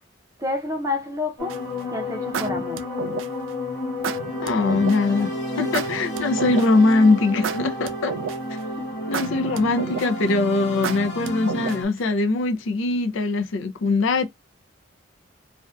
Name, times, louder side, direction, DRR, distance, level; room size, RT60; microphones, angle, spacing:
voice 1, 0.4-1.6 1.9-2.9 8.8-8.9, left 2 dB, 15° right, 0.6 m, -29 dB
sound 1, 1.4-11.9, left 1 dB, 60° left, 1.1 m, -31 dB
sound 2, 1.5-1.8 2.3-3.5 4.0-5.0 5.7-6.9 7.4-8.6 9.1-10.3 10.8-12.0, right 6 dB, 75° right, 0.3 m, -30 dB
voice 2, 4.4-8.1 9.1-14.3, left 3 dB, 75° left, 0.4 m, -21 dB
2.5 x 2.2 x 2.3 m
head